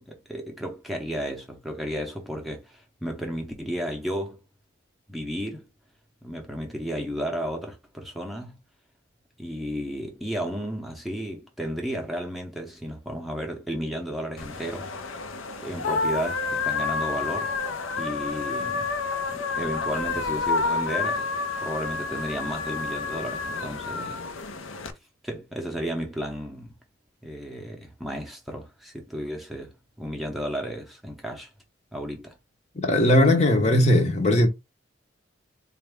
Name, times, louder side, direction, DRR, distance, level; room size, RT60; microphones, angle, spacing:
voice 1, 0.1-4.4 5.1-5.7 6.2-8.6 9.4-14.9 15.6-17.5 18.0-18.9 19.3-21.3 21.6-24.2 25.2-26.7 27.2-31.5 31.9-32.4, equal, ahead, 0.6 m, -33 dB
sound 1, 14.4-24.9, left 4 dB, 80° left, 0.7 m, -29 dB
voice 2, 32.8-34.5, left 1 dB, 35° left, 0.7 m, -19 dB
4.1 x 2.4 x 3.4 m
head